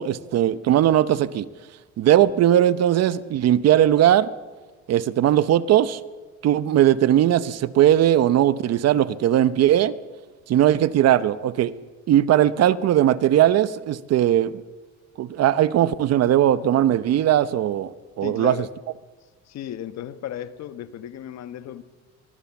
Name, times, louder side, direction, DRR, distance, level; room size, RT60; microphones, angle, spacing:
voice 1, 0.0-1.5 2.0-4.3 4.9-6.0 6.4-9.9 10.5-11.7 12.1-14.6 15.2-17.9 18.2-18.7, right 11 dB, 55° right, 0.9 m, -19 dB
voice 2, 18.2-18.7 19.5-21.8, left 10 dB, 55° left, 1.3 m, -35 dB
23.5 x 22.5 x 7.1 m
cardioid pair, 135°, 31 cm